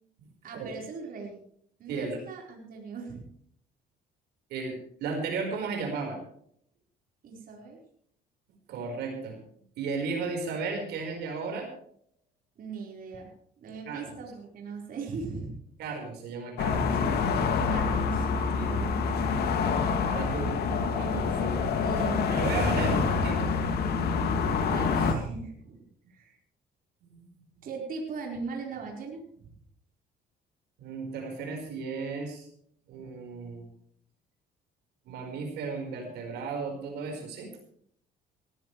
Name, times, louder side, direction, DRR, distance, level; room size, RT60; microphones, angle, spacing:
voice 1, 0.4-1.4 1.8-3.2 7.2-7.8 12.6-13.3 13.6-15.6 17.7-18.3 18.6-19.0 21.1-21.3 21.8-22.7 24.6-26.4 27.6-29.2, right 4 dB, 55° right, 0 dB, 4.6 m, -39 dB
voice 2, 1.9-2.2 4.5-6.2 8.7-9.4 9.8-11.7 13.9-14.0 15.8-17.0 18.6-18.8 20.0-21.8 22.3-23.9 27.1-27.3 27.6-27.7 30.8-32.5 32.9-33.6 35.1-37.5, right 4 dB, 80° right, 2 dB, 4.7 m, -35 dB
sound 1, 16.6-25.1, left 5 dB, 70° left, 2.4 m, -26 dB
19.0 x 15.0 x 3.3 m, 0.65 s
cardioid pair, 110°, 17 cm